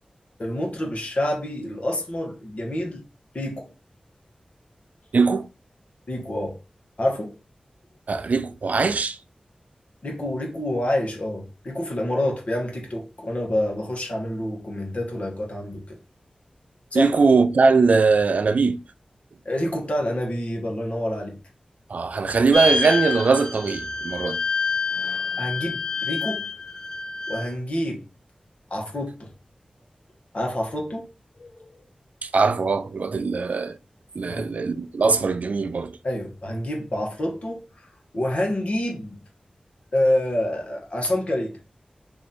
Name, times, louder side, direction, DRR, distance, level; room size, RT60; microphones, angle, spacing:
voice 1, 0.4-3.0 3.3-3.7 6.1-6.6 7.0-7.3 10.0-16.0 16.9-17.1 19.4-21.4 25.4-26.5 27.3-28.0 28.7-29.3 30.3-31.1 31.4-31.7 34.3-34.5 36.0-37.6 38.1-39.2 39.9-41.6, left 1 dB, 55° left, 1.3 m, -27 dB
voice 2, 5.1-5.5 8.1-9.2 16.9-18.8 21.9-24.4 32.2-33.8 34.2-36.0, right 4 dB, 70° right, 0.3 m, -21 dB
sound 1, 22.5-27.5, left 4 dB, 30° left, 0.5 m, -27 dB
3.0 x 2.7 x 4.0 m
wide cardioid pair, 65°, 3 cm